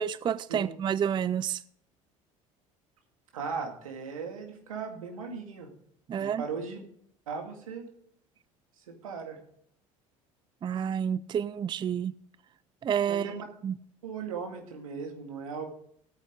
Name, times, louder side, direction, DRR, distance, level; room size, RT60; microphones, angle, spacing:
voice 1, 0.0-1.6 6.1-6.4 10.6-12.1 12.8-13.3 13.6-13.8, right 8 dB, 25° right, 0.4 m, -29 dB
voice 2, 3.3-5.7 6.2-6.8 7.3-7.8 8.9-9.4 13.1-13.5 14.0-15.7, right 5 dB, 80° right, 2.2 m, -37 dB
16.0 x 9.2 x 3.8 m
hypercardioid pair, 65°, 17 cm